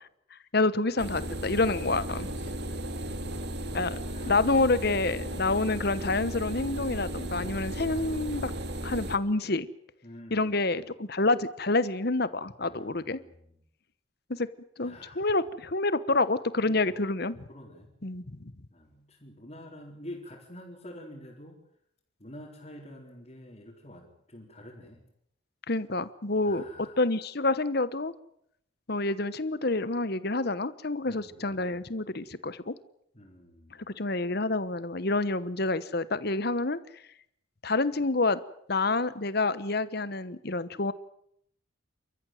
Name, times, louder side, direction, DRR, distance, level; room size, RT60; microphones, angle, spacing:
voice 1, 0.5-2.3 3.7-8.5 8.8-9.7 10.3-13.2 14.3-14.5 14.8-17.5 18.0-18.5 25.7-26.6 27.0-28.1 28.9-32.7 33.9-36.8 37.6-38.4 38.7-40.9, left 2 dB, 50° left, 15 dB, 1.1 m, -28 dB
sound 1, 1.0-9.2, right 1 dB, 55° right, 2.2 m, -35 dB
voice 2, 2.2-3.1 4.0-4.8 7.9-8.9 10.0-10.7 12.6-13.6 14.8-15.3 16.6-17.1 17.5-17.9 18.7-21.6 22.2-25.0 26.4-27.0 31.1-31.8 33.1-33.8, left 1 dB, 30° left, -4 dB, 4.5 m, -48 dB
29.5 x 14.5 x 9.3 m, 0.74 s
head